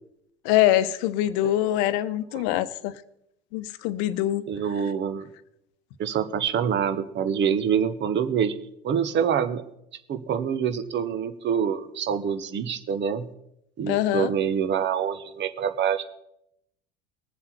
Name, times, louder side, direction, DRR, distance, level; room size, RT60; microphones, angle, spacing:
voice 1, 0.4-3.0 3.5-4.4 13.9-14.3, left 13 dB, 55° left, 0.9 m, -24 dB
voice 2, 2.3-2.7 4.5-5.3 6.0-8.5 8.8-9.6 10.1-13.3 13.8-16.0, right 8 dB, 35° right, 1.2 m, -26 dB
21.0 x 7.3 x 4.5 m
figure-of-eight pair, 70°, 32 cm